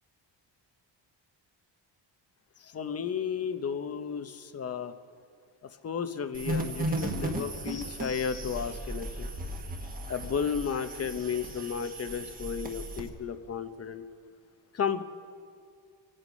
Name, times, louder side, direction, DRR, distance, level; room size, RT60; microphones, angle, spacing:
voice 1, 2.6-4.9 5.8-9.3 10.1-14.1 14.7-15.0, left 7 dB, 35° left, 10 dB, 0.7 m, -33 dB
sound 1, 6.3-13.1, right 1 dB, 20° right, 1.3 m, -36 dB
26.0 x 9.9 x 5.2 m, 2.3 s
wide cardioid pair, 165°, 45 cm